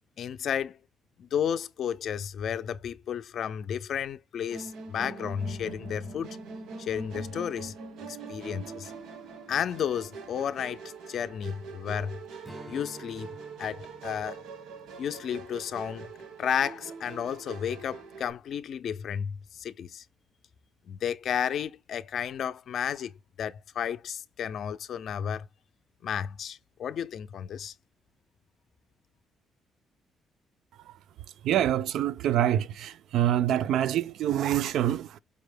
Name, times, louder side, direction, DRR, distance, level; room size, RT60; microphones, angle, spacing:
voice 1, 0.2-0.8 1.2-6.4 6.8-7.7 8.1-8.9 9.5-12.2 12.7-13.3 13.6-14.4 15.0-16.1 16.4-20.0 20.9-23.1 23.4-25.5 26.0-27.7, left 8 dB, 50° left, 0.4 m, -32 dB
Musical instrument, 4.5-18.3, right 4 dB, 90° right, 1.0 m, -43 dB
Strum, 12.4-17.1, right 1 dB, 5° right, 0.5 m, -51 dB
voice 2, 31.4-35.2, right 11 dB, 70° right, 0.3 m, -26 dB
5.2 x 2.1 x 3.3 m
cardioid pair, 150°, 0 cm